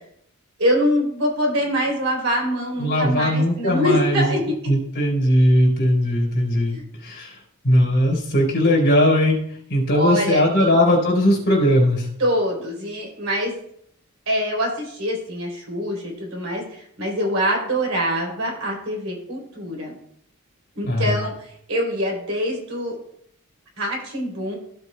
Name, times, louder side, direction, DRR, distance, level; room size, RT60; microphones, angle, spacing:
voice 1, 0.6-4.4 6.7-6.8 9.9-10.7 12.2-13.5 14.3-20.0 20.7-22.9 23.8-24.5, equal, 65° right, -1 dB, 3.6 m, -24 dB
voice 2, 2.8-4.4 4.7-7.4 7.6-9.4 9.7-12.1 20.9-21.1, equal, 55° left, 0 dB, 4.1 m, -19 dB
15.0 x 7.9 x 2.3 m, 0.69 s
head